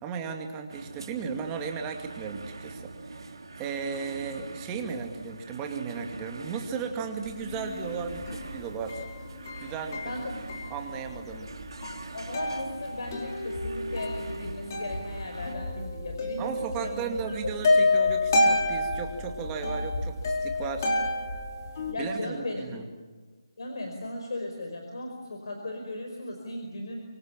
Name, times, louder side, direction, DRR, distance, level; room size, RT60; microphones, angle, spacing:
voice 1, 0.0-3.3 3.6-9.0 9.6-10.1 10.7-11.5 16.4-20.9 22.0-22.9, right 5 dB, 15° right, 4 dB, 2.4 m, -35 dB
sound 1, 0.7-15.5, right 3 dB, 70° right, 3.4 m, -44 dB
sound 2, 7.3-21.9, left 2 dB, 35° left, 4.6 m, -29 dB
voice 2, 10.0-10.5 12.1-16.5 16.8-17.0 17.3-17.4 21.9-22.7 23.6-27.0, left 1 dB, 60° left, 3 dB, 5.2 m, -37 dB
26.5 x 24.5 x 7.5 m, 1.4 s
figure-of-eight pair, 165°, 3 cm